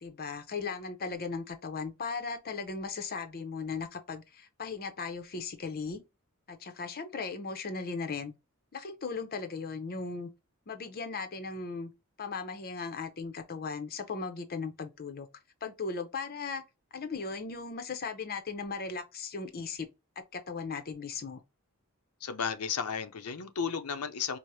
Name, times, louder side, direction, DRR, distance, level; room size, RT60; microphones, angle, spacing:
voice 1, 0.0-6.0 6.5-8.3 8.7-10.3 10.7-11.9 12.2-15.3 15.6-16.6 16.9-19.9 20.2-21.4, left 4 dB, 45° left, 0.6 m, -37 dB
voice 2, 22.2-24.4, left 6 dB, 90° left, 0.6 m, -33 dB
4.7 x 2.0 x 2.7 m
head